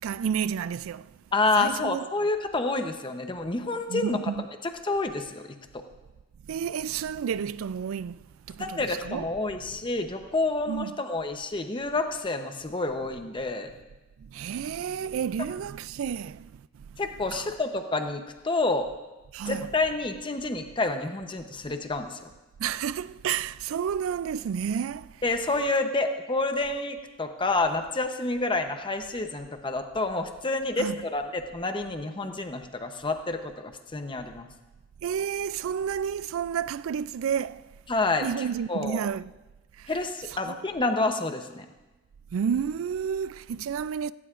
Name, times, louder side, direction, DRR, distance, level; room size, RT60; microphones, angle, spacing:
voice 1, 0.0-1.2 1.6-2.1 3.9-4.4 6.4-9.3 9.5-9.6 10.7-11.0 14.2-17.0 17.3-17.5 19.3-19.7 22.6-25.2 30.8-31.0 35.0-37.7 38.2-39.3 39.8-39.9 40.3-40.6 42.3-44.1, right 7 dB, 90° right, 0.3 m, -31 dB
voice 2, 1.3-4.2 4.6-5.5 5.7-5.8 8.6-13.7 17.0-18.9 19.5-22.3 25.2-34.5 37.9-38.3 38.7-39.0 39.9-41.7, left 2 dB, 25° left, 0.8 m, -28 dB
17.0 x 17.0 x 2.5 m
head